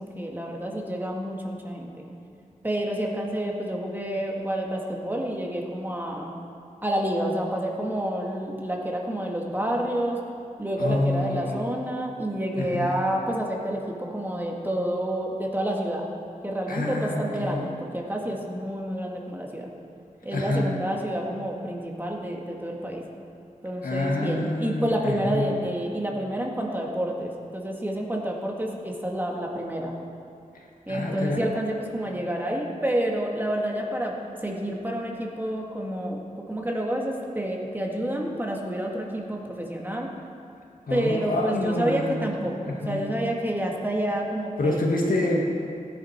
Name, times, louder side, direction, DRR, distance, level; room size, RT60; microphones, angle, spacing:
voice 1, 0.0-2.0 2.6-6.3 6.8-10.2 10.6-16.1 16.4-19.7 20.2-23.0 23.6-29.9 30.9-34.2 34.4-40.1 40.9-44.8, right 1 dB, 15° right, -1 dB, 1.9 m, -29 dB
voice 2, 10.8-11.6 12.6-13.0 16.7-17.6 20.3-20.7 23.8-25.5 30.9-31.4 40.9-42.3 42.6-43.1 44.6-45.4, left 2 dB, 80° left, -1 dB, 1.9 m, -27 dB
17.5 x 10.5 x 4.6 m, 2.5 s
wide cardioid pair, 85°, 14 cm